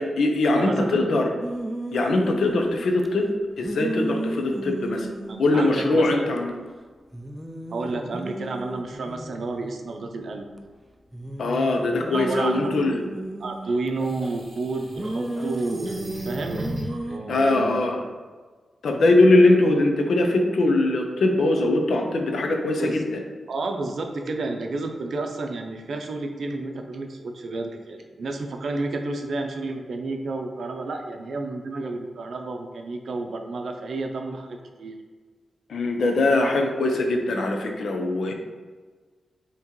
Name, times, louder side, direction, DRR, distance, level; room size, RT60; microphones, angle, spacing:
voice 1, 0.0-1.4 1.9-3.3 3.6-5.1 5.4-6.5 11.4-13.0 17.3-18.0 18.8-23.2 35.7-38.3, left 2 dB, 75° left, 3 dB, 0.6 m, -21 dB
voice 2, 0.5-1.0 5.3-6.3 7.7-10.5 12.1-13.0 13.4-16.7 17.1-17.8 22.8-23.0 23.5-35.0, right 3 dB, 60° right, 4 dB, 0.5 m, -31 dB
sound 1, 1.4-3.1 3.6-6.5 6.8-6.9 7.1-10.6 11.1-13.9 14.9-17.2, right 1 dB, 5° right, 0.3 m, -34 dB
sound 2, 13.6-17.1, right 1 dB, 35° right, 0.9 m, -38 dB
5.8 x 3.0 x 3.0 m, 1.4 s
wide cardioid pair, 140°, 0 cm